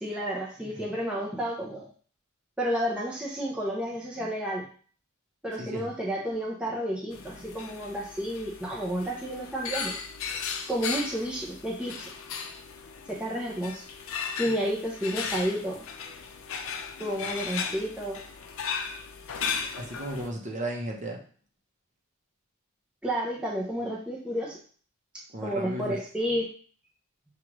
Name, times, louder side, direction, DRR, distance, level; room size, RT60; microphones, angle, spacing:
voice 1, 0.0-1.9 2.6-4.6 5.4-9.9 10.7-12.1 13.1-13.8 14.4-15.8 17.0-18.2 23.0-24.6 25.4-26.5, equal, 5° right, -4 dB, 0.6 m, -31 dB
voice 2, 5.6-5.9 19.8-21.2 25.3-26.0, right 1 dB, 35° right, 1 dB, 0.8 m, -34 dB
sound 1, 7.1-20.3, left 6 dB, 65° left, 0.5 m, -36 dB
6.3 x 2.4 x 3.0 m, 0.43 s
head